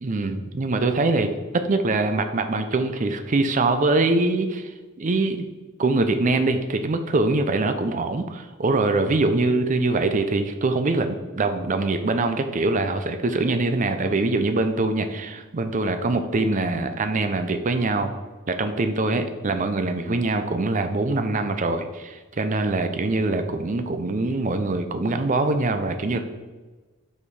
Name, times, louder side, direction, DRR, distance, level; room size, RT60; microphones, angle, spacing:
voice 1, 0.0-4.7 5.0-5.5 5.8-18.1 18.5-26.2, right 2 dB, 35° right, 8 dB, 0.5 m, -23 dB
5.5 x 4.4 x 4.8 m, 1.2 s
head